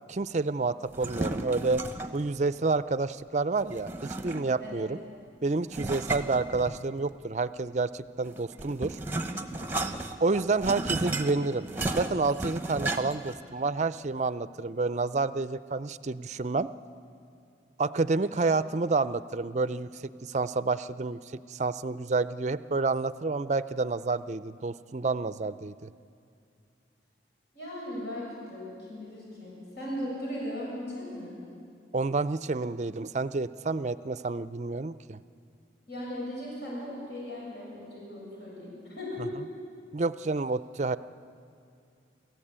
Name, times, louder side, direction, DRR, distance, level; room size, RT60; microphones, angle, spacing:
voice 1, 0.1-1.8 2.1-5.0 5.4-9.0 10.2-11.7 11.9-16.7 17.8-21.2 21.5-25.9 31.9-35.2 39.9-41.0, right 3 dB, 40° right, 15 dB, 0.5 m, -29 dB
sound 1, 0.9-2.3 3.7-4.7 5.7-7.1 8.3-13.3, right 2 dB, 10° right, 1.0 m, -34 dB
voice 2, 27.5-31.4 35.9-39.3, left 1 dB, 65° left, -5 dB, 7.4 m, -38 dB
28.0 x 15.0 x 8.8 m, 2.4 s
head